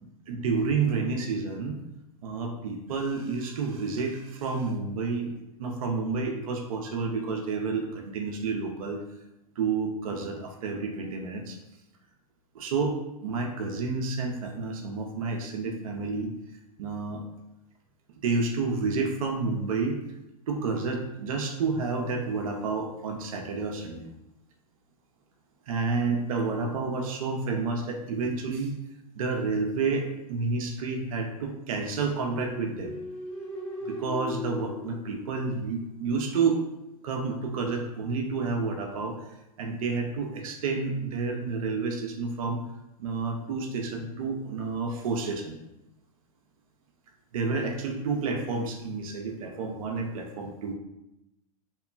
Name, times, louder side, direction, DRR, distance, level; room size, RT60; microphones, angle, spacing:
voice 1, 0.3-1.8 2.2-5.3 5.6-9.0 9.6-11.6 12.5-13.0 13.2-16.3 16.8-17.2 18.2-20.0 20.5-24.1 25.7-28.8 29.2-33.0 33.9-36.6 37.0-39.2 39.6-42.6 43.0-45.6 47.3-50.7, right 4 dB, 60° right, 3 dB, 0.5 m, -30 dB
sound 1, 32.1-35.9, left 1 dB, 5° left, 0.3 m, -38 dB
2.9 x 2.1 x 2.3 m, 0.91 s
hypercardioid pair, 105°, 21 cm